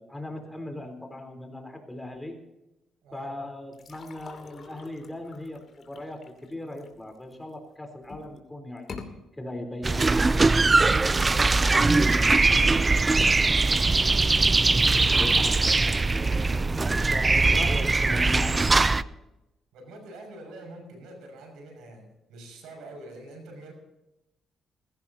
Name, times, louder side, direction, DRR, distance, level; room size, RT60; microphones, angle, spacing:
voice 1, 0.0-2.4 3.1-10.6 15.1-19.3, left 1 dB, 10° left, 4 dB, 3.8 m, -39 dB
sound 1, 3.7-7.5 8.0-8.4 8.8-9.1, left 5 dB, 45° left, 2.7 m, -45 dB
sound 2, 9.8-19.0, right 3 dB, 25° right, 0.5 m, -21 dB
voice 2, 11.0-14.0 17.0-17.3 19.7-23.7, right 1 dB, 85° right, 4 dB, 6.2 m, -45 dB
20.5 x 16.5 x 2.9 m, 0.94 s
cardioid pair, 90°, 0 cm